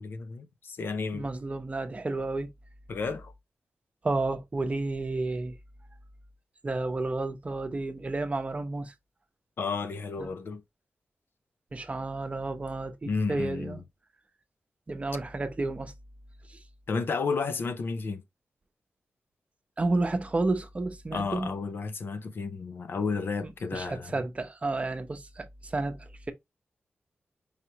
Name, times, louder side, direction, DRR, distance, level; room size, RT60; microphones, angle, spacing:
voice 1, 0.0-1.3 2.9-3.3 9.6-10.6 13.1-13.8 16.9-18.2 21.1-24.1, left 4 dB, 65° left, 0.5 m, -32 dB
voice 2, 1.1-2.5 4.0-5.5 6.6-8.9 10.2-10.3 11.7-13.8 14.9-15.9 19.8-21.5 23.7-26.3, right 2 dB, 35° right, 0.8 m, -31 dB
4.8 x 3.1 x 2.9 m
wide cardioid pair, 90°, 4 cm